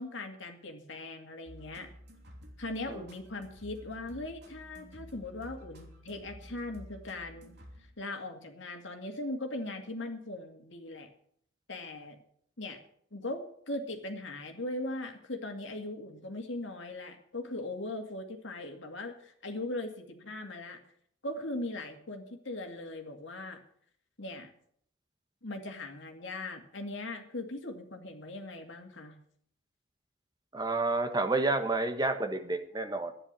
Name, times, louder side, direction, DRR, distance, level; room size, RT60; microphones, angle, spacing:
voice 1, 0.0-1.9 2.6-7.5 8.0-11.1 11.7-12.2 12.6-12.8 13.1-20.8 21.2-23.6 24.2-24.5 25.4-29.1, left 2 dB, 65° left, 5 dB, 2.3 m, -39 dB
sound 1, 1.5-8.3, equal, 50° right, 3.0 m, -51 dB
voice 2, 30.5-33.1, right 2 dB, 20° right, 7 dB, 1.3 m, -30 dB
12.0 x 9.9 x 7.6 m, 0.64 s
head